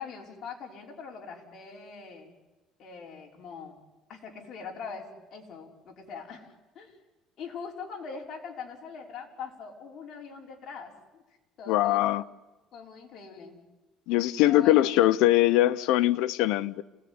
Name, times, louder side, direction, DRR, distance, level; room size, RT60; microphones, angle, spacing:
voice 1, 0.0-2.3 2.8-3.8 4.1-7.0 7.4-11.2 11.6-12.0 12.7-13.6 14.4-14.9, left 5 dB, 45° left, 5.5 m, -42 dB
voice 2, 11.7-12.2 14.1-16.8, left 15 dB, 85° left, 0.9 m, -22 dB
29.0 x 18.0 x 9.8 m
cardioid pair, 145°, 0 cm